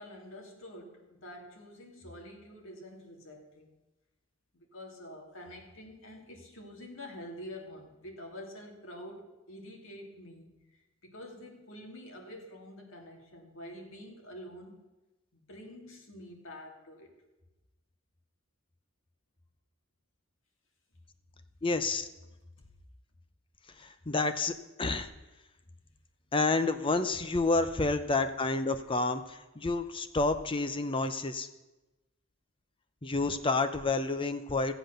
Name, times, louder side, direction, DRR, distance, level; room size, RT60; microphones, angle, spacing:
voice 1, 0.0-3.7 4.5-10.5 11.0-14.8 15.3-17.1, left 1 dB, 80° left, 1 dB, 2.6 m, -47 dB
voice 2, 21.6-22.1 23.8-25.1 26.3-31.5 33.0-34.7, left 3 dB, 25° left, 10 dB, 0.6 m, -29 dB
14.5 x 8.0 x 6.6 m, 1.0 s
head